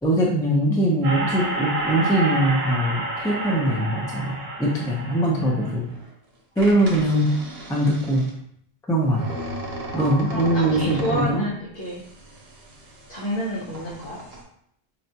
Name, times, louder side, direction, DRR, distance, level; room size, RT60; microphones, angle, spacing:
voice 1, 0.0-5.9 6.6-7.3 7.7-8.2 8.9-9.2 9.9-11.4, right 1 dB, 5° left, -3 dB, 0.4 m, -22 dB
sound 1, 1.0-6.0 6.6-8.3 9.0-11.4 11.9-13.4 13.7-14.4, right 1 dB, 75° right, 1.0 m, -31 dB
voice 2, 9.9-12.0 13.1-14.2, equal, 60° left, -5 dB, 0.8 m, -30 dB
4.1 x 2.3 x 2.7 m, 0.69 s
omnidirectional pair, 1.1 m